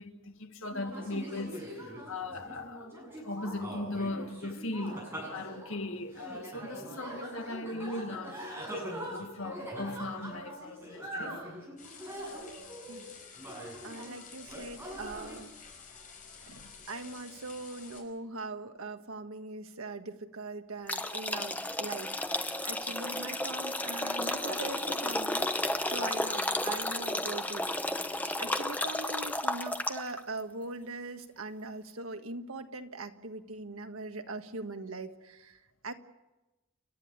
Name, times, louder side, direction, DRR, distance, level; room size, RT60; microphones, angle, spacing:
voice 1, 0.0-8.5 9.0-11.4 16.5-16.7, left 2 dB, 75° left, 1.8 m, -38 dB
sound 1, 0.7-14.1 14.5-15.4, right 1 dB, 10° right, 7.6 m, -42 dB
sound 2, 11.8-18.0, left 5 dB, 35° left, 5.8 m, -50 dB
voice 2, 13.8-15.5 16.9-27.7 28.4-35.9, right 3 dB, 85° right, 1.6 m, -41 dB
sound 3, 20.9-30.2, left 1 dB, 10° left, 0.9 m, -33 dB
29.5 x 12.5 x 9.8 m
head